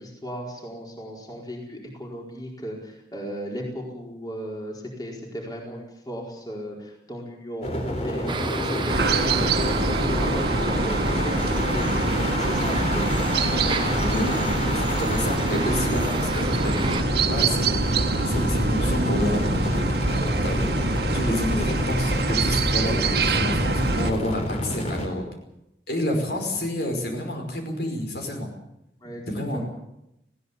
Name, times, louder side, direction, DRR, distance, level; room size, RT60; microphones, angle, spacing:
voice 1, 0.0-12.0 12.4-13.1 20.1-20.4 20.7-21.0 21.5-21.7 29.0-29.2 29.5-29.6, equal, 20° left, -1 dB, 4.6 m, -36 dB
sound 1, 7.6-25.1, left 1 dB, 40° left, 3.7 m, -29 dB
sound 2, 8.3-17.0, right 3 dB, 25° right, 1.2 m, -32 dB
sound 3, 8.9-24.1, right 3 dB, 65° right, 1.7 m, -25 dB
voice 2, 13.9-16.9 17.2-19.4 20.4-20.7 21.1-25.2 25.9-28.5 29.3-29.6, left 1 dB, 70° left, 3 dB, 5.3 m, -29 dB
20.0 x 17.0 x 8.3 m, 0.85 s
head